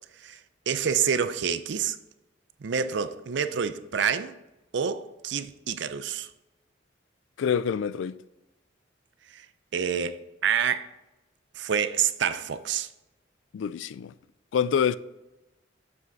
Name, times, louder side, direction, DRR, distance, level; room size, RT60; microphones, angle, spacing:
voice 1, 0.7-2.0 2.6-4.3 4.7-6.3 9.3-9.5 9.7-10.9 11.6-12.9, right 7 dB, 65° right, 0.5 m, -27 dB
voice 2, 7.4-8.2 13.5-14.1 14.5-15.0, left 7 dB, 75° left, 0.3 m, -26 dB
7.8 x 5.7 x 3.9 m
head